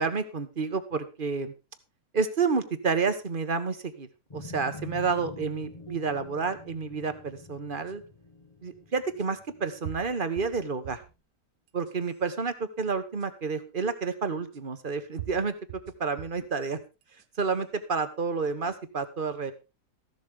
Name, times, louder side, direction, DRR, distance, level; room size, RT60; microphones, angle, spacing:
voice 1, 0.0-1.5 2.1-4.1 4.3-8.0 8.6-11.0 11.7-16.8 17.4-19.5, right 5 dB, 35° right, 10 dB, 1.5 m, -30 dB
sound 1, 4.3-10.9, left 2 dB, 25° left, 1.1 m, -47 dB
sound 2, 7.9-8.0 9.2-9.3 9.8-11.2 11.7-12.2 13.2-13.3 14.5-14.6 15.2-16.5 17.0-17.6, right 13 dB, 90° right, 1.4 m, -43 dB
15.0 x 12.0 x 3.6 m, 0.29 s
omnidirectional pair, 1.7 m